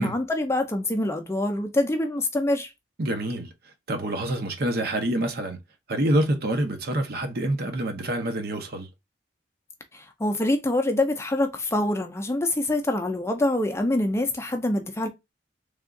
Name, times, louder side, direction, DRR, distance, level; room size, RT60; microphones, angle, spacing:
voice 1, 0.0-2.7 9.9-15.1, left 1 dB, 15° left, 0.5 m, -25 dB
voice 2, 3.0-3.5 3.9-5.6 5.9-8.9, right 1 dB, 55° right, 0.8 m, -26 dB
3.5 x 2.4 x 3.6 m
head